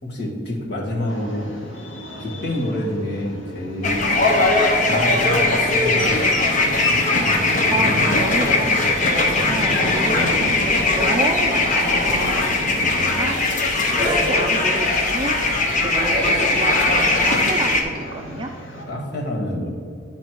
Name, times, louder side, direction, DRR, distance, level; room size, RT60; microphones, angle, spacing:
voice 1, 0.0-1.5 2.2-4.1 4.8-7.0 10.2-10.4 12.7-13.3 18.9-19.7, left 1 dB, 55° left, -3 dB, 1.6 m, -28 dB
sound 1, 1.1-18.8, equal, 80° left, 1.5 m, -34 dB
sound 2, 3.8-17.8, left 2 dB, 40° left, 0.9 m, -19 dB
voice 2, 7.7-12.4 13.0-13.3 13.9-15.4 15.7-18.5, right 3 dB, 25° right, 3 dB, 0.3 m, -29 dB
Human voice / Animal, 9.6-10.4 11.5-12.5 13.8-14.6 15.8-16.6, equal, 5° left, 1.1 m, -30 dB
10.5 x 4.1 x 4.5 m, 2.3 s
head